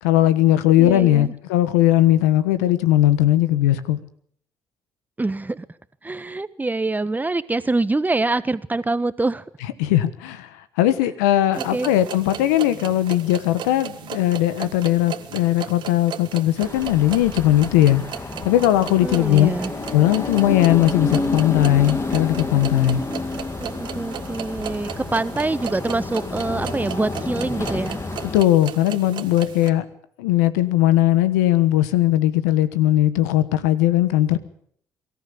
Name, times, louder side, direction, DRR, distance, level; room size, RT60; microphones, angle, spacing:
voice 1, 0.0-4.0 9.8-18.0 18.4-19.5 19.9-23.0 28.3-29.9 30.2-34.4, left 13 dB, 90° left, 1.3 m, -18 dB
voice 2, 0.8-1.3 5.2-5.6 6.0-9.4 11.6-11.9 19.0-19.7 22.9-23.2 23.6-28.0, right 2 dB, 20° right, 1.4 m, -25 dB
sound 1, 11.5-29.7, right 10 dB, 65° right, 1.8 m, -36 dB
sound 2, 16.6-28.4, left 3 dB, 35° left, 2.4 m, -30 dB
23.5 x 13.5 x 8.6 m
hypercardioid pair, 50°, 8 cm